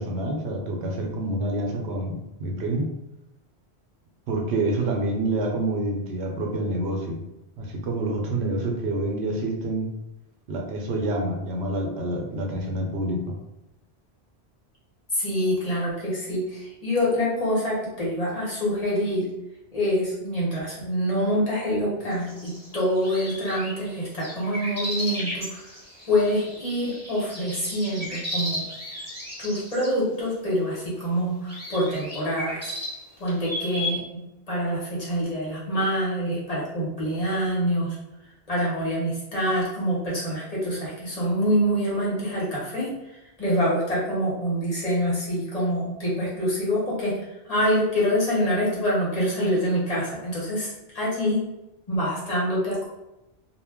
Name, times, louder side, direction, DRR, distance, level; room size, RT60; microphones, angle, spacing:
voice 1, 0.0-2.9 4.3-7.2 7.6-9.9 10.5-13.3, right 1 dB, 85° right, 1 dB, 0.9 m, -27 dB
voice 2, 15.1-19.3 19.7-25.6 26.1-28.6 29.4-32.7 33.2-34.2 34.5-38.0 38.5-42.9 43.4-47.1 47.4-51.4 51.9-52.9, equal, 40° left, -7 dB, 0.9 m, -26 dB
sound 1, 22.1-29.9 30.7-30.8 31.5-34.0, left 1 dB, 15° right, 0.9 m, -35 dB
2.2 x 2.1 x 3.4 m, 0.93 s
omnidirectional pair, 1.1 m